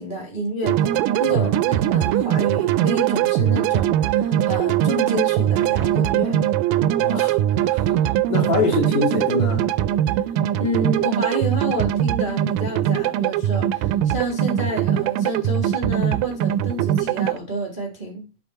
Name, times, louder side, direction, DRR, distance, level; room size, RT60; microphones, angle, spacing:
voice 1, 0.0-6.4 10.1-10.2 10.6-18.2, right 1 dB, 55° right, 0.5 m, -29 dB
sound 1, 0.6-17.4, right 11 dB, 80° right, 2.1 m, -21 dB
voice 2, 7.0-7.4 7.6-7.9 8.3-9.7, left 3 dB, 70° left, 3.8 m, -24 dB
12.0 x 4.1 x 4.1 m
omnidirectional pair, 4.0 m